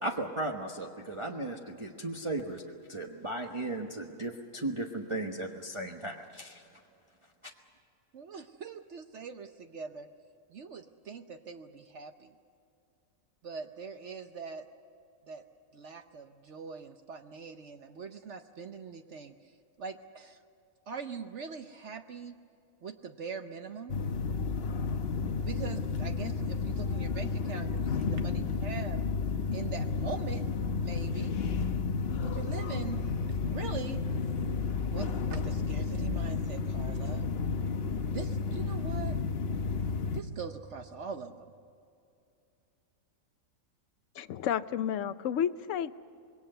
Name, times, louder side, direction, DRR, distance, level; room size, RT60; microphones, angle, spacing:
voice 1, 0.0-2.6 2.9-6.6, right 2 dB, 25° right, 0 dB, 1.2 m, -36 dB
voice 2, 8.1-10.1 10.5-12.3 13.4-14.7 15.3-15.4 15.7-19.3 19.8-20.4 20.9-22.4 22.8-24.0 25.4-29.0 29.5-30.4 30.8-31.4 32.2-33.1 33.4-34.0 34.9-37.2 38.1-39.2 40.1-41.5, right 5 dB, 60° right, 7 dB, 1.1 m, -42 dB
sound 1, 23.9-40.2, left 4 dB, 50° left, 1.1 m, -32 dB
voice 3, 44.2-45.9, left 9 dB, 70° left, 14 dB, 1.0 m, -31 dB
26.0 x 21.5 x 6.8 m, 2.6 s
omnidirectional pair, 1.4 m